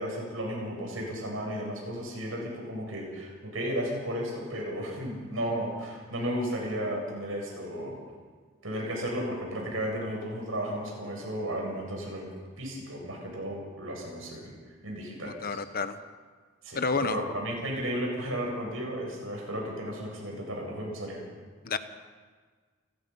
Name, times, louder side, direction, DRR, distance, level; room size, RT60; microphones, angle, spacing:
voice 1, 0.0-8.0 8.6-12.3 12.6-14.5 14.8-15.6 16.6-21.2, equal, 90° right, -1 dB, 7.9 m, -34 dB
voice 2, 15.2-16.0 16.7-17.2 21.6-21.8, left 4 dB, 50° left, 10 dB, 1.1 m, -30 dB
29.5 x 16.0 x 5.6 m, 1.5 s
head